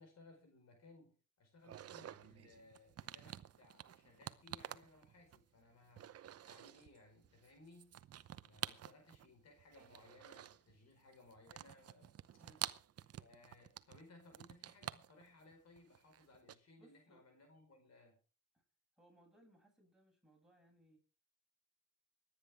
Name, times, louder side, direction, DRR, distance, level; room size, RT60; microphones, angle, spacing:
voice 1, 0.0-6.1 6.4-8.0 8.4-12.1 13.2-18.2, left 2 dB, 60° left, 4 dB, 5.0 m, -63 dB
sound 1, 1.6-5.6 5.9-7.0 7.2-9.3 9.6-10.8 11.1-16.5, right 10 dB, 55° right, 0.8 m, -49 dB
voice 2, 16.8-17.2 19.0-21.0, right 1 dB, ahead, -1 dB, 7.8 m, -67 dB
25.0 x 9.9 x 3.6 m, 0.35 s
cardioid pair, 90°, 30 cm